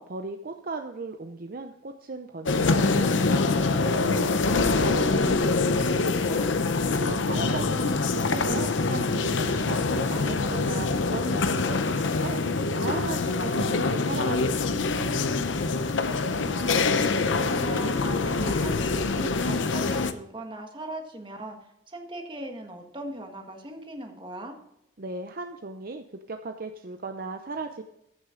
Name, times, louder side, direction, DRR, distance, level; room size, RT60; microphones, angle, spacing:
voice 1, 0.0-15.3 25.0-27.8, right 3 dB, 50° right, 6 dB, 0.6 m, -37 dB
sound 1, 2.5-20.1, left 3 dB, 80° left, 0.7 m, -25 dB
voice 2, 16.0-21.6 21.9-24.6, right 1 dB, 25° right, 3 dB, 1.5 m, -39 dB
14.5 x 6.5 x 3.8 m, 0.81 s
head